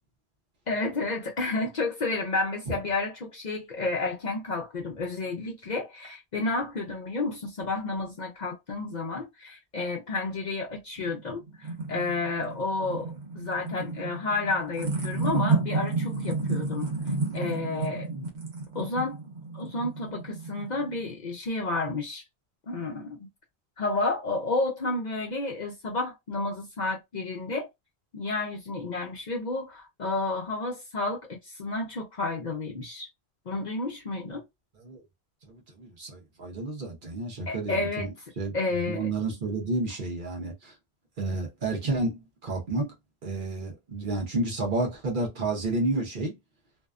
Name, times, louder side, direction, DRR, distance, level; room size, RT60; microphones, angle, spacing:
voice 1, 0.7-13.1 13.4-16.9 17.3-18.3 18.7-19.2 19.5-22.2 22.7-23.3 23.8-27.7 28.1-33.1 33.5-34.4 37.5-38.1 38.5-39.1, left 3 dB, 50° left, 0.6 m, -31 dB
sound 1, 11.0-21.1, right 3 dB, 85° right, 1.1 m, -31 dB
voice 2, 35.4-38.1 38.4-38.5 38.9-40.8 41.2-42.9 43.2-46.4, right 2 dB, 55° right, 0.9 m, -30 dB
2.6 x 2.2 x 2.3 m
omnidirectional pair, 1.1 m